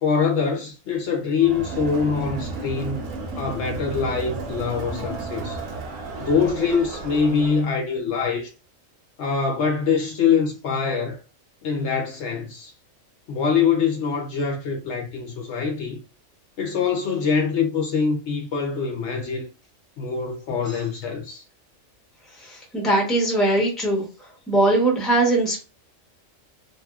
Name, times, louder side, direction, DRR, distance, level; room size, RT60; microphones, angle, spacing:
voice 1, 0.0-3.1 3.4-5.6 6.2-8.5 9.2-11.2 11.6-12.7 13.3-16.0 16.6-19.5 20.0-21.4, left 6 dB, 65° left, 0.9 m, -24 dB
Crowd, 1.4-7.7, right 3 dB, 90° right, 1.1 m, -33 dB
voice 2, 22.4-24.0 24.5-25.6, right 2 dB, ahead, 0.8 m, -21 dB
2.8 x 2.6 x 2.3 m
omnidirectional pair, 1.3 m